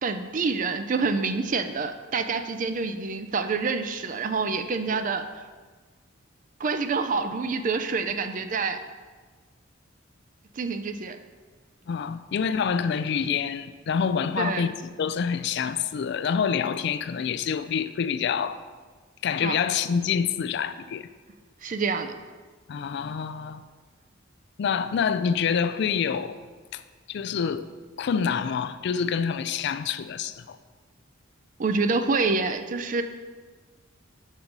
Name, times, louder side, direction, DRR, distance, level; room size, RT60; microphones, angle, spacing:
voice 1, 0.0-5.4 6.6-8.8 10.6-11.2 14.4-14.7 19.4-19.6 21.6-22.1 31.6-33.0, right 4 dB, 40° right, 0.4 m, -27 dB
voice 2, 11.9-14.7 15.0-18.6 19.2-21.1 22.7-23.6 24.6-26.4 26.7-26.8 27.1-27.7 28.0-30.6, left 6 dB, 55° left, 0.3 m, -27 dB
5.5 x 5.1 x 5.9 m
head